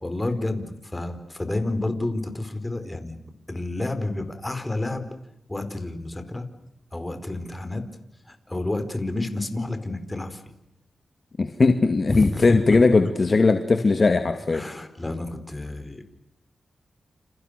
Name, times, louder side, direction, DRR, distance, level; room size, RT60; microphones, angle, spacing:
voice 1, 0.0-3.2 3.5-5.1 5.5-6.5 6.9-7.9 8.3-10.4 12.1-13.0 14.5-16.0, left 2 dB, 20° left, 9 dB, 4.7 m, -29 dB
voice 2, 11.4-14.6, left 3 dB, 45° left, 7 dB, 2.3 m, -19 dB
29.5 x 29.0 x 6.8 m, 0.83 s
cardioid pair, 80°, 0 cm